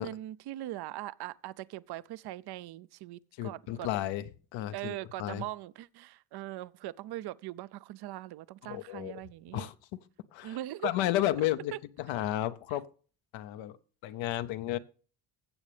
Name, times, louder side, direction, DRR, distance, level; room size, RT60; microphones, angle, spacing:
voice 1, 0.0-3.9 4.7-9.7 10.4-10.9, right 15 dB, 60° right, 0.5 m, -41 dB
voice 2, 3.4-4.2 4.5-5.4 8.6-9.1 9.5-9.7 10.3-10.6 10.8-12.8 13.3-13.8 14.0-14.8, left 14 dB, 85° left, 0.7 m, -32 dB
16.0 x 7.4 x 3.3 m
supercardioid pair, 75°, 44 cm